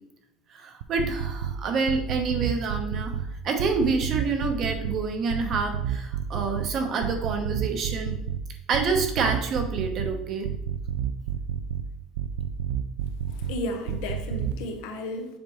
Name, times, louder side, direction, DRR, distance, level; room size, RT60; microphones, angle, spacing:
voice 1, 0.5-8.2 8.7-10.5, right 4 dB, 40° right, 4 dB, 1.0 m, -28 dB
sound 1, 0.8-1.5 1.9-3.3 3.6-5.0 5.3-6.7 7.0-8.4 8.7-10.1 10.4-11.8 12.2-13.5 13.9-14.5, right 9 dB, 85° right, 0.4 m, -29 dB
voice 2, 13.3-15.4, left 1 dB, 75° left, 5 dB, 1.0 m, -34 dB
7.4 x 4.4 x 3.1 m, 0.87 s
cardioid pair, 140°, 0 cm